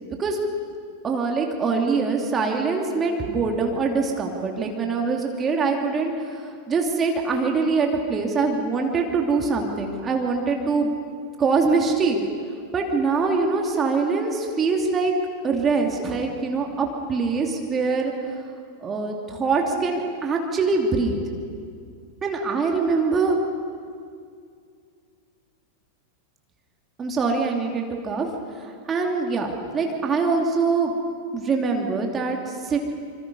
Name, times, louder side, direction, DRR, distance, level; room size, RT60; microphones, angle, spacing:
voice 1, 1.0-10.9 11.4-12.2 12.7-15.1 15.4-18.1 18.8-21.2 22.2-23.4 27.0-30.9 31.3-32.8, right 4 dB, 20° right, 1 dB, 2.7 m, -23 dB
26.0 x 26.0 x 5.5 m, 2.3 s
figure-of-eight pair, 90°, 0 cm